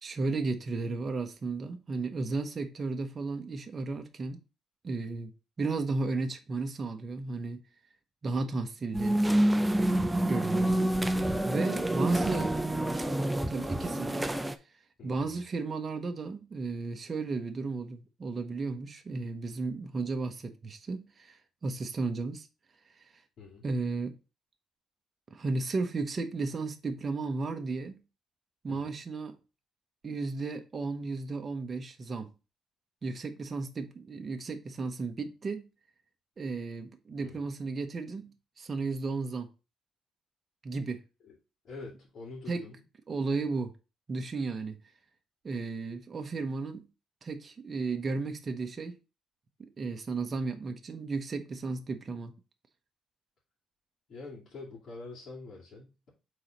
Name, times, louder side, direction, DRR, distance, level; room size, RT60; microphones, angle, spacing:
voice 1, 0.0-4.4 4.8-5.3 5.6-7.6 8.2-9.2 10.3-12.5 13.5-14.2 15.0-22.5 23.6-24.2 25.3-28.0 28.6-29.4 30.0-32.3 33.0-35.7 36.4-39.5 40.6-41.0 42.5-42.6 43.1-43.7 44.1-44.8 45.4-46.9 47.2-49.0 49.8-52.3, right 3 dB, 35° right, 0.9 m, -34 dB
sound 1, 8.9-14.5, right 1 dB, 10° right, 0.6 m, -27 dB
voice 2, 11.5-12.7 15.0-15.4 23.4-23.7 28.7-29.0 37.2-37.5 41.2-41.4 41.6-42.8 54.1-56.1, left 3 dB, 60° left, 2.4 m, -45 dB
4.8 x 4.1 x 5.8 m
cardioid pair, 125°, 0 cm